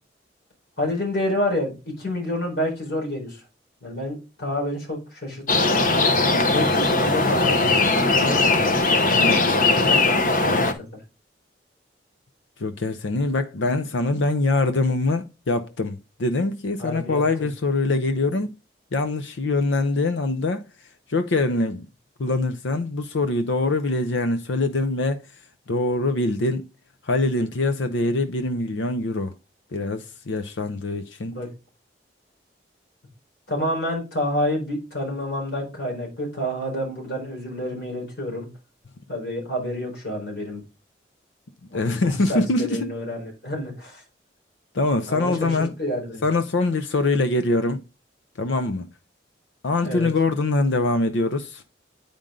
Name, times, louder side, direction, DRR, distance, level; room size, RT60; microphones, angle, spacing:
voice 1, 0.8-3.4 3.8-6.0 6.5-10.7 16.8-17.5 31.3-31.5 33.5-38.5 39.1-40.6 41.7-44.0 45.1-46.2 49.8-50.1, left 1 dB, 65° left, 4.4 m, -29 dB
sound 1, 5.5-10.7, left 3 dB, 45° left, 0.9 m, -19 dB
voice 2, 9.1-9.6 12.6-18.5 18.9-20.6 21.1-21.9 22.2-25.2 25.7-26.6 27.0-29.3 29.7-31.3 41.7-42.9 44.7-45.7 46.2-47.8 48.4-48.9 49.6-51.6, left 2 dB, 80° left, 0.6 m, -23 dB
8.8 x 5.2 x 3.7 m
head